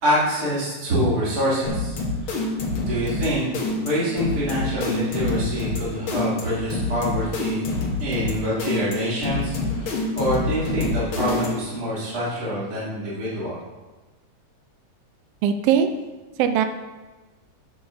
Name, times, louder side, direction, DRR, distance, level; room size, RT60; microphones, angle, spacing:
voice 1, 0.0-1.9 2.2-2.5 2.8-3.5 3.8-7.7 8.0-13.6, equal, 30° right, -9 dB, 3.0 m, -26 dB
sound 1, 1.7-11.8, left 2 dB, 55° left, 1.7 m, -27 dB
voice 2, 15.4-15.9 16.4-16.6, right 8 dB, 80° right, 7 dB, 1.4 m, -19 dB
10.5 x 6.8 x 2.7 m, 1.2 s
omnidirectional pair, 3.3 m